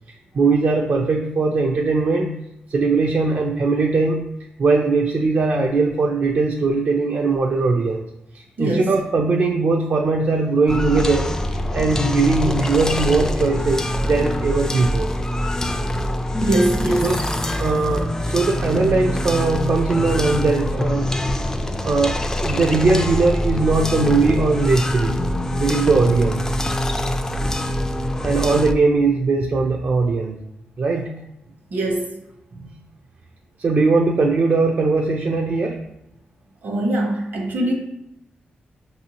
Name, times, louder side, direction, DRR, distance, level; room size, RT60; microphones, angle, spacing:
voice 1, 0.3-2.3 2.7-4.2 4.6-8.0 8.3-15.1 16.9-17.2 17.6-21.1 21.8-25.2 25.6-26.5 28.2-30.4 30.8-31.1 32.6-32.7 33.6-35.8, right 3 dB, 55° right, 2 dB, 0.4 m, -20 dB
voice 2, 8.6-8.9 16.4-17.2 31.7-32.2 36.6-37.7, right 1 dB, 70° right, 0 dB, 1.1 m, -22 dB
sound 1, 10.7-28.7, left 1 dB, 15° left, 0.3 m, -24 dB
5.4 x 2.7 x 2.9 m, 0.84 s
cardioid pair, 85°, 4 cm